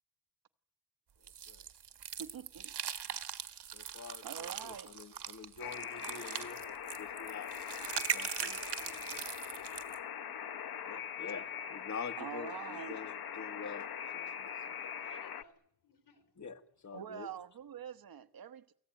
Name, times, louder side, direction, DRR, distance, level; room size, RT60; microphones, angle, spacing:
sound 1, 1.3-10.0, right 8 dB, 90° right, 1.6 m, -41 dB
voice 1, 2.2-2.7 4.2-4.9 12.2-13.0 16.9-18.8, right 8 dB, 60° right, 1.2 m, -45 dB
voice 2, 3.7-7.5 7.9-9.3 10.8-13.9 14.1-14.5 16.4-17.3, left 5 dB, 45° left, 1.9 m, -47 dB
Alarm, 5.6-15.4, left 8 dB, 65° left, 1.0 m, -42 dB
voice 3, 15.0-16.5 16.8-18.1, left 5 dB, 80° left, 3.9 m, -64 dB
28.5 x 18.5 x 9.3 m
wide cardioid pair, 155°, 39 cm